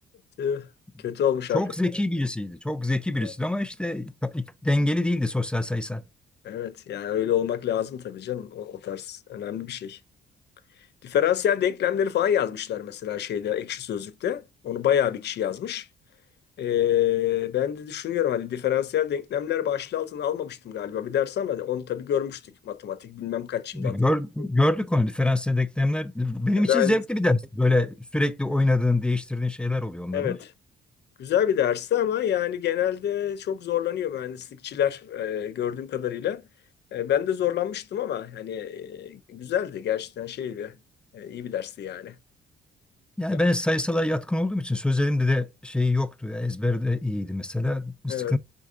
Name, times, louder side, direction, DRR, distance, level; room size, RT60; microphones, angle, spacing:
voice 1, 1.0-1.6 3.2-3.3 6.4-10.0 11.0-15.9 16.6-24.0 26.6-27.0 30.1-30.5 31.2-36.4 36.9-40.7 41.1-42.1 48.1-48.4, left 10 dB, 60° left, 0.5 m, -27 dB
voice 2, 1.5-6.0 23.7-30.4 43.2-48.4, left 2 dB, 5° left, 0.4 m, -25 dB
4.5 x 3.6 x 2.4 m
cardioid pair, 90°, 20 cm